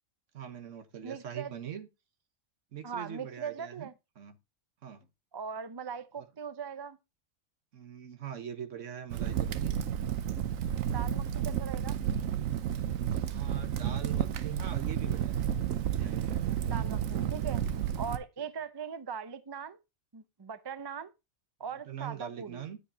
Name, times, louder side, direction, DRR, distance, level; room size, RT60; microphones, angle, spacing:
voice 1, 0.3-1.9 2.7-3.9 4.2-4.4 4.8-5.1 6.2-6.3 7.7-9.8 13.3-15.4 15.9-16.4 18.4-18.5 21.9-22.8, right 9 dB, 70° right, 1.4 m, -42 dB
voice 2, 1.0-1.5 2.8-3.9 5.3-7.0 10.8-11.9 16.6-17.6 18.0-19.8 20.1-21.1 21.6-22.6, right 6 dB, 30° right, 0.5 m, -40 dB
Crackle, 9.1-18.2, right 9 dB, 90° right, 1.1 m, -31 dB
9.9 x 7.8 x 2.7 m
omnidirectional pair, 1.3 m